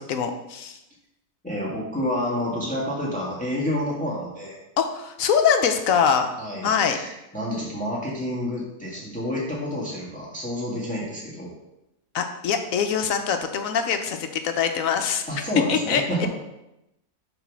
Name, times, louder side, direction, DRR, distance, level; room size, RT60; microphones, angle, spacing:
voice 1, 0.1-0.8 4.8-6.3 6.6-7.0 12.1-15.4 15.7-16.3, left 7 dB, 75° left, 6 dB, 1.1 m, -23 dB
voice 2, 1.4-4.6 6.4-11.5 15.3-16.3, equal, 5° left, -6 dB, 1.6 m, -29 dB
7.2 x 3.7 x 6.1 m, 0.90 s
omnidirectional pair, 1.5 m